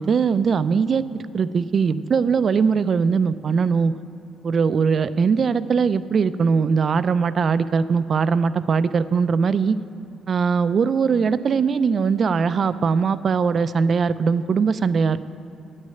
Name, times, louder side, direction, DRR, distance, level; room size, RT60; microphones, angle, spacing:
voice 1, 0.0-3.9 4.4-9.8 10.3-15.2, right 5 dB, 50° right, 14 dB, 0.4 m, -20 dB
9.6 x 6.4 x 8.8 m, 2.8 s
cardioid pair, 90°, 0 cm